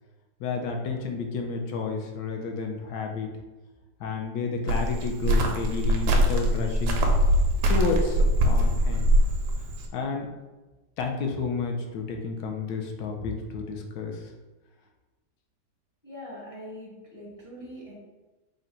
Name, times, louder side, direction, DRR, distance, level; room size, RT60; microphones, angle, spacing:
voice 1, 0.4-3.3 4.0-7.0 7.7-9.1 9.9-10.3 11.0-14.3, left 4 dB, 70° left, 2 dB, 1.0 m, -31 dB
Cricket, 4.7-9.8, equal, 70° right, 1.0 m, -22 dB
voice 2, 16.0-17.9, equal, 35° left, -7 dB, 0.5 m, -42 dB
3.8 x 2.2 x 4.1 m, 1.2 s
omnidirectional pair, 2.0 m